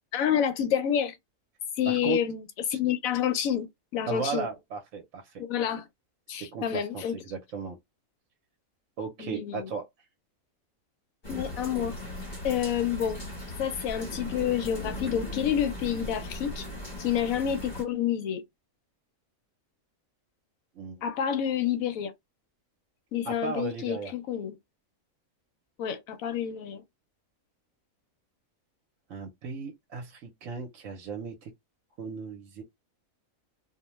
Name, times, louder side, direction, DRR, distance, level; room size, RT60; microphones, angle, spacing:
voice 1, 0.1-1.2 1.8-4.5 5.4-5.9 6.3-7.2 9.2-9.7 11.3-11.9 12.4-13.2 13.6-16.7 17.0-18.4 21.0-22.1 23.1-24.6 25.8-26.8, left 9 dB, 80° left, 1.1 m, -29 dB
voice 2, 1.9-2.2 4.1-5.5 6.4-7.8 9.0-9.9 20.7-21.0 23.3-24.1 29.1-31.5 32.0-32.6, right 5 dB, 70° right, 1.0 m, -36 dB
sound 1, 11.2-17.8, left 1 dB, 35° left, 1.3 m, -38 dB
2.6 x 2.1 x 3.0 m
omnidirectional pair, 1.4 m